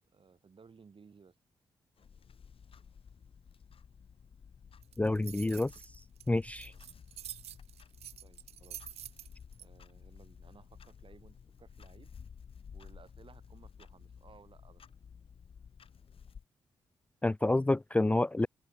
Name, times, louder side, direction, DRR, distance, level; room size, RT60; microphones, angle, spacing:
voice 1, 0.0-1.4 6.6-6.8 8.2-8.9 9.6-12.1 12.7-14.8, right 5 dB, 55° right, 7.4 m, -59 dB
Clock, 2.0-16.4, left 6 dB, 60° left, 1.6 m, -54 dB
sound 1, 4.8-9.6, right 11 dB, 75° right, 0.4 m, -47 dB
voice 2, 5.0-5.7 6.3-6.7 17.2-18.5, left 2 dB, 10° left, 0.3 m, -28 dB
open air
supercardioid pair, 45°, 11 cm